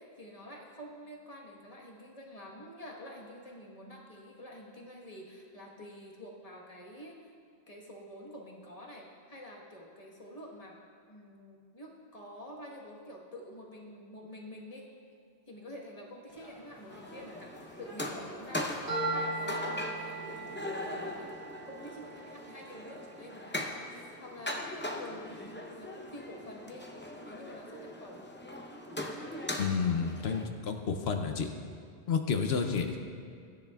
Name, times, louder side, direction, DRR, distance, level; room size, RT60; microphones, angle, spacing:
voice 1, 0.0-7.3 7.7-10.8 11.1-14.8 15.1-15.2 15.5-18.7 19.1-23.7 24.2-24.7 25.0-26.9 27.2-28.2 32.6-32.9, left 1 dB, 35° left, -2 dB, 1.4 m, -48 dB
sound 1, 16.3-21.3, equal, 25° right, 2.8 m, -54 dB
sound 2, 16.9-30.5, left 1 dB, 15° left, 0.6 m, -40 dB
sound 3, 18.9-22.9, right 2 dB, 70° right, 3.3 m, -38 dB
voice 2, 29.6-31.5 32.1-33.0, left 5 dB, 75° left, 5 dB, 0.9 m, -30 dB
16.5 x 10.0 x 2.3 m, 2.2 s
omnidirectional pair, 1.1 m